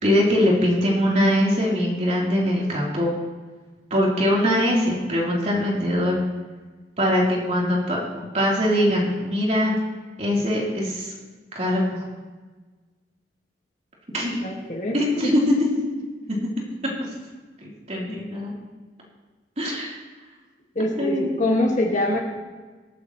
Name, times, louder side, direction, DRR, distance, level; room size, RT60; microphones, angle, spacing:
voice 1, 0.0-3.1 3.9-6.2 7.0-9.7 10.2-11.1 11.5-12.0 14.1-14.4 14.9-15.4 15.7-15.8 16.3-16.4 17.6-18.5 19.6-19.9 21.0-21.7, equal, 40° right, -4 dB, 3.6 m, -22 dB
voice 2, 14.4-15.0 15.2-15.3 18.1-18.2 20.8-22.2, left 1 dB, 45° left, 0 dB, 2.0 m, -24 dB
24.5 x 8.5 x 3.1 m, 1.3 s
head